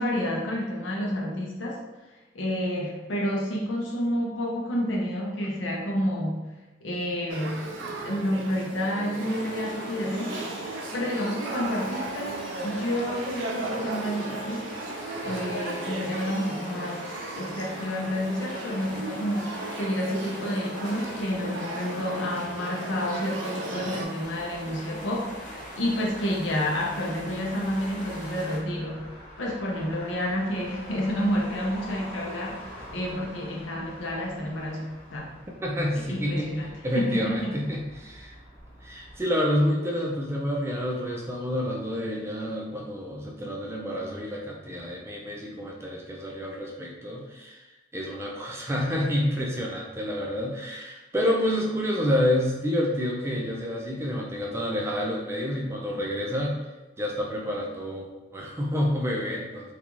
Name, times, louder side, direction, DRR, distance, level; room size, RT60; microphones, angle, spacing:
voice 1, 0.0-1.8 2.3-6.5 6.8-14.7 15.2-17.0 17.3-35.3 36.1-37.6, equal, 85° left, -2 dB, 0.6 m, -30 dB
Male speech man speaking / Child speech kid speaking / Conversation, 7.3-24.1, right 2 dB, 90° right, 0.4 m, -36 dB
sound 1, 9.2-28.6, equal, 45° left, 0.6 m, -41 dB
Motor vehicle (road), 24.2-39.2, equal, 10° left, 0.7 m, -46 dB
voice 2, 35.6-36.5 36.8-38.4 38.8-47.7 47.9-56.6 57.0-59.7, equal, 15° right, -1 dB, 0.3 m, -28 dB
2.4 x 2.3 x 2.9 m, 1.1 s
head